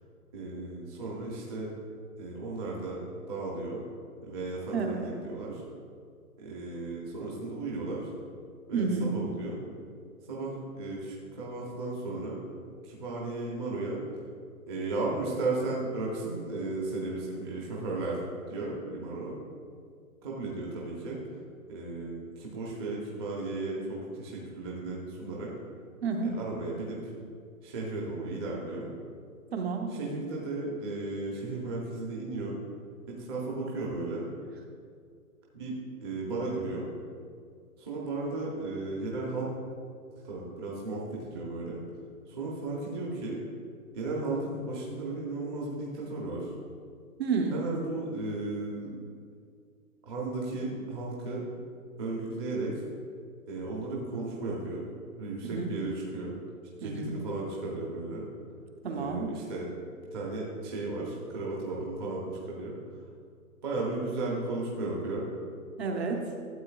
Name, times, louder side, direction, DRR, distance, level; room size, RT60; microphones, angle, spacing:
voice 1, 0.3-1.7 2.2-3.8 4.2-5.6 6.4-8.1 8.7-9.6 10.3-12.4 12.8-14.0 14.7-18.2 18.5-19.4 20.2-21.2 21.7-25.5 26.2-27.1 27.6-28.9 29.9-32.6 33.1-34.3 35.5-36.9 37.8-39.5 40.1-41.8 42.3-43.4 43.9-46.5 47.5-49.0 50.0-51.4 52.0-52.8 53.5-54.9 55.2-56.4 56.8-58.3 58.9-59.7 60.1-63.0 63.6-65.3, right 2 dB, 15° right, -4 dB, 0.7 m, -35 dB
voice 2, 4.7-5.1 8.7-9.1 26.0-26.3 29.5-29.9 47.2-47.6 55.5-55.7 56.8-57.1 58.8-59.3 65.8-66.2, right 4 dB, 45° right, 3 dB, 1.0 m, -30 dB
12.5 x 7.8 x 2.4 m, 2.2 s
hypercardioid pair, 155°, 44 cm